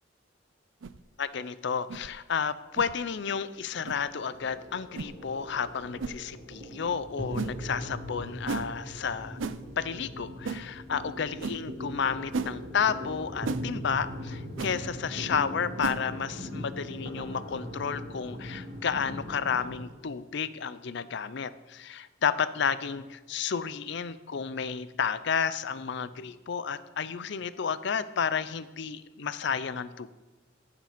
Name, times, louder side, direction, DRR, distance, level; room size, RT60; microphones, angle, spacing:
sound 1, 0.8-1.0 1.9-2.1 2.8-2.9 3.8-4.0 4.9-5.1 6.0-6.2 7.4-7.6 8.5-8.7 9.4-9.6 10.4-10.6 11.4-11.6 12.3-12.5 13.4-13.6 14.6-14.7 15.8-16.0, right 4 dB, 75° right, 0.5 m, -33 dB
voice 1, 1.2-9.4 9.8-30.1, left 6 dB, 60° left, 14 dB, 0.5 m, -31 dB
sound 2, 3.1-19.8, equal, 50° right, 1.8 m, -40 dB
16.0 x 6.6 x 5.1 m, 1.2 s
head